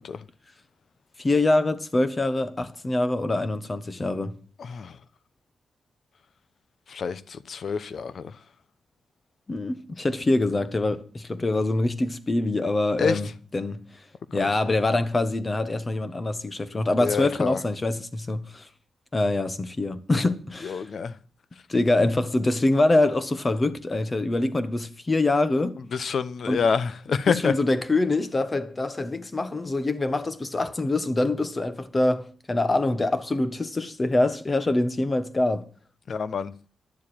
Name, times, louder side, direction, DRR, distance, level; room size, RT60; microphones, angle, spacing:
voice 1, 1.2-4.4 9.5-14.0 14.3-18.7 19.1-20.9 21.7-25.8 26.5-26.6 27.3-35.7, left 2 dB, 25° left, 1.3 m, -25 dB
voice 2, 4.6-5.0 6.9-8.4 13.0-13.2 14.3-14.5 17.0-17.6 20.6-21.2 25.9-27.5 36.1-36.5, left 6 dB, 55° left, 0.8 m, -27 dB
12.0 x 7.4 x 8.8 m
cardioid pair, 115°, 0 cm